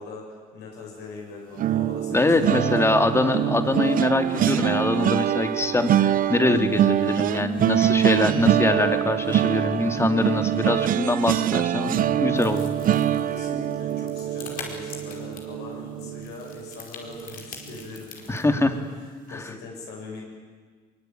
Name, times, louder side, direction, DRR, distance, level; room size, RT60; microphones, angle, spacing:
voice 1, 0.0-2.9 13.2-20.2, left 3 dB, 75° left, -1 dB, 7.8 m, -41 dB
sound 1, 1.6-16.7 17.1-17.4 17.7-17.9, right 11 dB, 55° right, 0.8 m, -24 dB
voice 2, 2.1-12.6 18.3-18.7 19.3-19.4, left 2 dB, 15° left, 7 dB, 2.3 m, -23 dB
sound 2, 12.3-18.4, left 5 dB, 55° left, 5.1 m, -43 dB
23.0 x 22.5 x 9.3 m, 1.6 s
cardioid pair, 110°, 17 cm